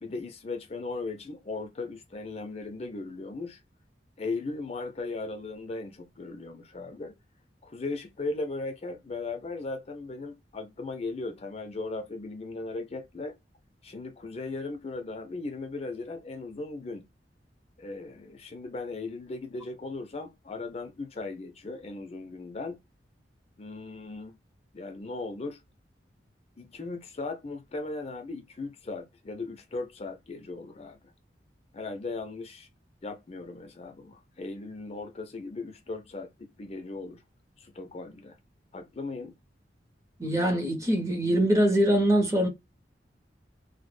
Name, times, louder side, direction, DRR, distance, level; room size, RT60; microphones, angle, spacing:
voice 1, 0.0-3.6 4.2-7.1 7.6-13.4 13.8-17.1 17.8-22.8 23.6-24.3 24.7-25.6 26.6-31.0 31.7-32.7 33.0-37.2 37.6-38.4 38.7-39.3, left 3 dB, 35° left, 0.4 m, -37 dB
voice 2, 40.2-42.5, right 1 dB, 15° right, 0.6 m, -23 dB
2.1 x 2.0 x 3.1 m
head